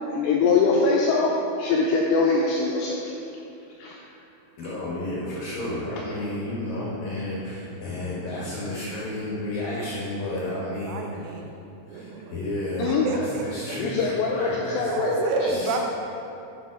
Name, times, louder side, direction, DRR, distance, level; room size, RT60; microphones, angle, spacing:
voice 1, 0.1-1.3 1.6-3.1 3.8-4.0 5.3-5.4 12.8-13.1 13.8-15.5, left 4 dB, 85° left, -2 dB, 2.5 m, -23 dB
voice 2, 4.6-11.2 11.9-15.8, left 1 dB, 70° left, -6 dB, 2.2 m, -32 dB
voice 3, 10.8-11.5 11.9-12.4 12.8-13.4 13.7-13.8 14.9-15.8, right 4 dB, 85° right, 2 dB, 3.1 m, -29 dB
7.4 x 7.2 x 6.0 m, 2.8 s
omnidirectional pair, 5.8 m